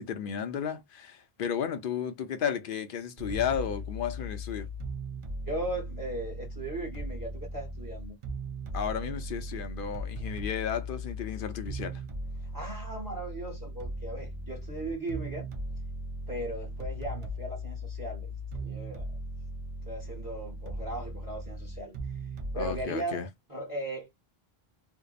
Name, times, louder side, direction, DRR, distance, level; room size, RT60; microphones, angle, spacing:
voice 1, 0.0-4.7 8.7-12.0 22.5-23.3, left 8 dB, 65° left, 0.7 m, -33 dB
sound 1, 3.2-22.8, equal, 45° right, 0.4 m, -38 dB
voice 2, 5.4-8.2 12.4-15.5 16.3-19.1 19.8-24.1, right 1 dB, 20° right, 1.1 m, -38 dB
2.7 x 2.1 x 2.3 m
omnidirectional pair, 1.0 m